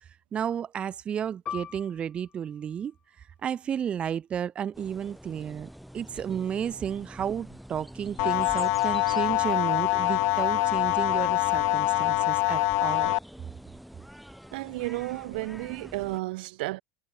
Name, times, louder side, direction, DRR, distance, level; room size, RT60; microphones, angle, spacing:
voice 1, 0.0-13.2, right 8 dB, 20° right, 1.1 m, -33 dB
Piano, 1.5-6.5 6.8-7.0 7.8-8.1, left 9 dB, 20° left, 1.4 m, -45 dB
sound 1, 4.7-16.2, equal, ahead, 4.3 m, -47 dB
sound 2, 8.2-13.2, left 24 dB, 45° left, 0.6 m, -25 dB
voice 2, 14.5-16.8, right 21 dB, 70° right, 2.8 m, -32 dB
supercardioid pair, 175°, 5 cm